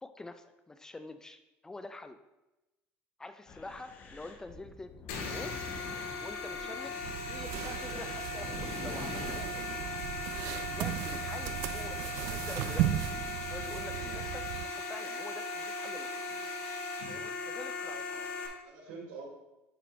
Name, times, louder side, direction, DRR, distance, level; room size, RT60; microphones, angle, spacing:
voice 1, 0.0-2.2 3.2-4.9 5.2-5.6 6.2-7.0 7.2-9.8 10.7-13.0 13.5-16.1 17.1-18.3, left 2 dB, 10° left, 10 dB, 0.4 m, -46 dB
sound 1, 3.5-9.4, left 3 dB, 35° left, 1.0 m, -46 dB
sound 2, 5.1-18.5, left 3 dB, 85° left, 1.7 m, -38 dB
sound 3, 7.0-14.7, right 13 dB, 70° right, 0.3 m, -36 dB
voice 2, 18.2-19.3, right 5 dB, 90° right, -1 dB, 2.6 m, -49 dB
11.0 x 4.5 x 3.0 m, 0.99 s
cardioid pair, 140°, 5 cm